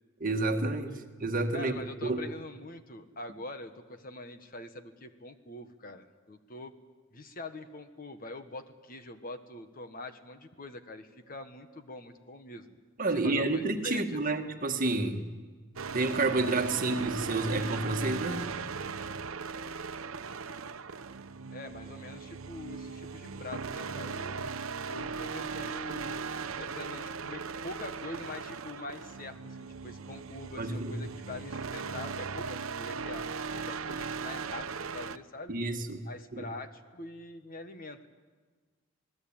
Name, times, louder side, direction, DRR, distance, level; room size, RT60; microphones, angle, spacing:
voice 1, 0.2-2.2 13.0-15.3 15.9-18.5 30.6-31.0 35.5-36.0 36.3-36.4, right 2 dB, 40° right, 5 dB, 1.7 m, -30 dB
voice 2, 1.5-6.7 7.1-12.7 13.2-14.4 21.5-24.5 24.9-26.3 26.6-35.5 36.0-38.1, left 2 dB, 45° left, 8 dB, 1.5 m, -44 dB
sound 1, 15.8-35.2, right 5 dB, 90° right, 0.9 m, -38 dB
27.5 x 19.0 x 8.9 m, 1.5 s
head